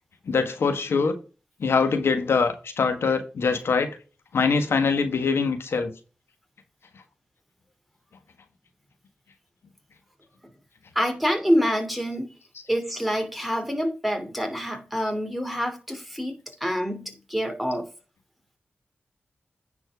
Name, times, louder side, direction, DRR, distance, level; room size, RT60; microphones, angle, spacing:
voice 1, 0.3-1.1 1.6-4.0 4.3-5.9, left 5 dB, 85° left, 1.5 m, -23 dB
voice 2, 10.9-12.3 12.7-17.8, equal, ahead, 2.8 m, -26 dB
9.9 x 4.4 x 4.8 m
cardioid pair, 70°, 4 cm